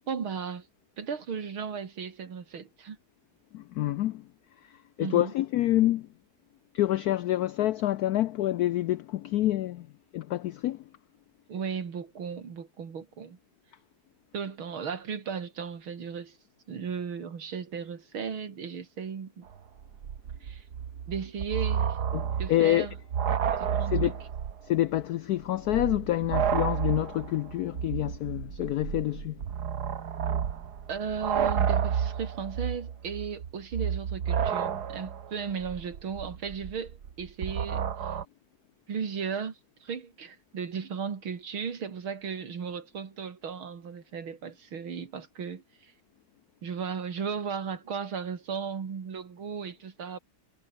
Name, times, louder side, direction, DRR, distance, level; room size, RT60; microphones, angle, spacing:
voice 1, 0.1-0.7 1.0-3.0 5.0-5.3 11.5-13.4 14.3-16.4 16.7-19.5 20.4-20.6 21.1-22.0 22.4-22.9 23.6-24.1 30.9-38.2 38.9-45.9 46.6-50.2, right 6 dB, 85° right, 3.3 m, -36 dB
voice 2, 3.5-4.2 5.0-6.1 6.7-9.9 10.1-10.8 22.1-22.9 23.5-23.6 23.9-24.1 24.6-29.4, left 14 dB, 85° left, 0.8 m, -27 dB
sound 1, 19.5-19.6 19.8-24.7 24.9-25.0 25.6-38.2, right 8 dB, 55° right, 1.8 m, -31 dB
omnidirectional pair, 2.2 m